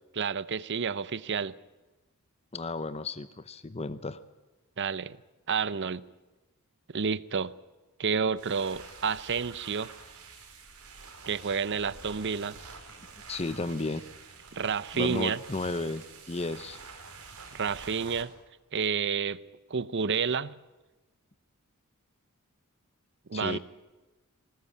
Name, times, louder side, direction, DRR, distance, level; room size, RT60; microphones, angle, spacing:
voice 1, 0.2-1.5 4.8-5.2 5.5-6.0 6.9-7.5 8.0-9.9 11.3-12.6 14.5-15.4 17.5-18.3 18.7-19.4 19.7-20.5 23.3-23.6, right 5 dB, 55° right, 0.7 m, -30 dB
voice 2, 2.5-4.2 13.3-14.0 14.9-16.8 23.3-23.6, left 2 dB, 30° left, 0.8 m, -33 dB
sound 1, 8.3-18.2, right 4 dB, 90° right, 4.8 m, -48 dB
21.0 x 18.5 x 8.5 m
head